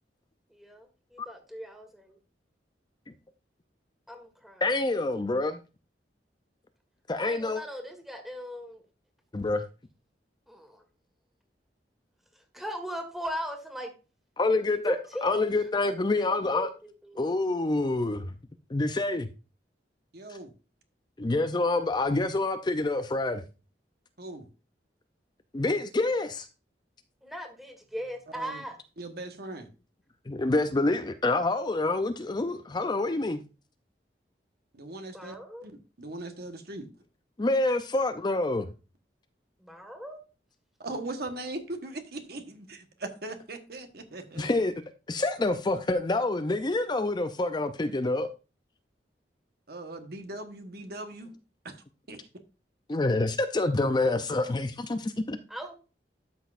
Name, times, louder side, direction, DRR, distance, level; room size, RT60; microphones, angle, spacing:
voice 1, 0.5-1.9 4.1-4.6 7.2-8.8 10.5-10.8 12.5-13.9 14.9-15.5 16.3-17.5 27.2-28.8 35.1-35.7 39.6-40.2 55.5-55.8, equal, ahead, 1.6 m, -38 dB
voice 2, 4.6-5.6 7.1-7.6 9.3-9.6 14.4-14.9 15.2-16.7 17.2-18.3 18.7-19.3 21.2-23.4 25.5-26.5 30.3-33.4 37.4-38.7 44.4-44.7 45.1-48.3 52.9-55.4, left 2 dB, 25° left, 0.5 m, -27 dB
voice 3, 20.1-20.5 24.2-24.5 28.3-28.6 29.0-29.7 34.7-35.4 35.6-36.9 40.8-44.5 49.7-51.4 51.6-51.8 52.1-52.3 52.9-53.0, right 2 dB, 60° right, 1.3 m, -39 dB
12.5 x 6.1 x 2.5 m
head